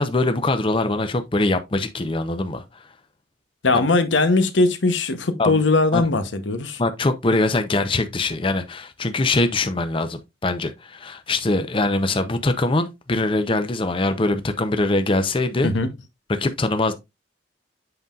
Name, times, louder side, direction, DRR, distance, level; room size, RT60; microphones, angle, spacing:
voice 1, 0.0-2.8 5.4-5.6 5.9-6.1 6.8-15.7 16.3-16.9, left 2 dB, 30° left, 0.6 m, -22 dB
voice 2, 3.6-6.8 15.6-15.9, left 3 dB, 90° left, 0.9 m, -20 dB
7.9 x 5.4 x 2.4 m
head